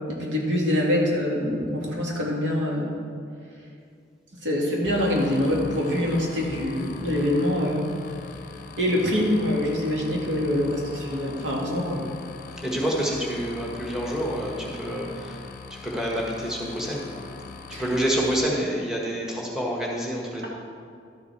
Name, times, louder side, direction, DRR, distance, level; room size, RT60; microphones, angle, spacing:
voice 1, 0.1-2.9 4.4-7.9 8.8-12.0 17.7-17.8, left 1 dB, 85° right, -2 dB, 2.1 m, -25 dB
sound 1, 4.8-18.4, left 4 dB, 45° left, 0.6 m, -41 dB
voice 2, 12.6-15.4 15.8-17.0 17.7-20.5, right 1 dB, 5° right, -3 dB, 1.3 m, -27 dB
12.0 x 7.2 x 4.6 m, 2.2 s
head